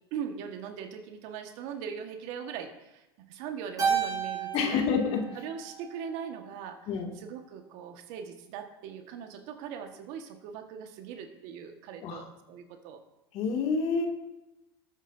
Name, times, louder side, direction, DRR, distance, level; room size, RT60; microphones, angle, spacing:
voice 1, 0.1-4.8 5.4-6.9 7.2-13.0, right 7 dB, 65° right, 5 dB, 1.6 m, -40 dB
Keyboard (musical), 3.8-6.3, right 6 dB, 30° right, 3.9 m, -32 dB
voice 2, 4.5-5.2 6.9-7.1 12.0-12.2 13.3-14.1, left 5 dB, 55° left, 2 dB, 2.4 m, -28 dB
19.0 x 8.8 x 2.7 m, 0.94 s
hypercardioid pair, 100°, 13 cm